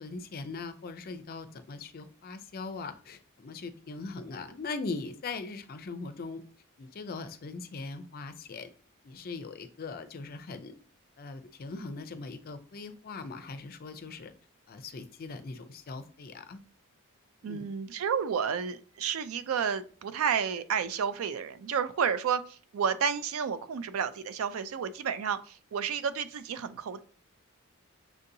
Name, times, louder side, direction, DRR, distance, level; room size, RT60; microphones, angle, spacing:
voice 1, 0.0-6.4 6.8-8.7 9.0-10.7 11.2-14.3 14.7-16.6 17.4-17.6, left 3 dB, 45° left, 10 dB, 0.4 m, -40 dB
voice 2, 17.4-27.0, right 7 dB, 70° right, 12 dB, 0.4 m, -31 dB
6.0 x 2.7 x 2.6 m, 0.42 s
head